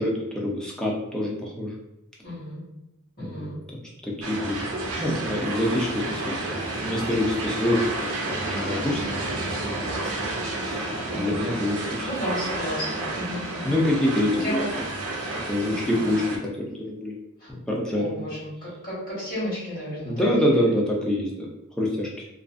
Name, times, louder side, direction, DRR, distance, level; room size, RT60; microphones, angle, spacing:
voice 1, 0.0-1.7 3.2-3.5 4.0-4.6 5.0-10.1 10.6-12.1 13.6-14.6 15.5-16.4 16.8-17.1 17.7-18.2 20.1-21.5 21.8-22.1, left 1 dB, 5° left, -4 dB, 0.4 m, -26 dB
voice 2, 2.2-2.6 3.2-3.6 11.1-11.4 12.1-13.8 14.4-14.7 15.6-16.0 17.4-17.5 17.9-20.7, equal, 45° left, -8 dB, 1.2 m, -33 dB
sound 1, 4.2-16.4, right 2 dB, 65° right, 0.6 m, -31 dB
2.4 x 2.4 x 2.4 m, 0.87 s
head